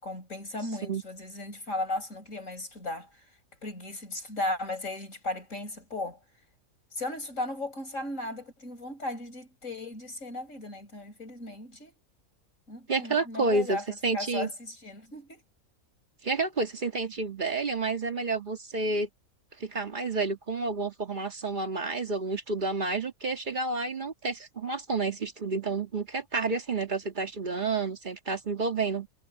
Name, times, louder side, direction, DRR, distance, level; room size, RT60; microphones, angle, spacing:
voice 1, 0.0-3.1 3.6-6.2 6.9-11.9 12.7-15.4, left 2 dB, 60° left, 7.0 m, -36 dB
voice 2, 12.9-14.5 16.2-19.1 19.6-29.1, right 3 dB, 35° right, 1.9 m, -30 dB
omnidirectional pair, 1.5 m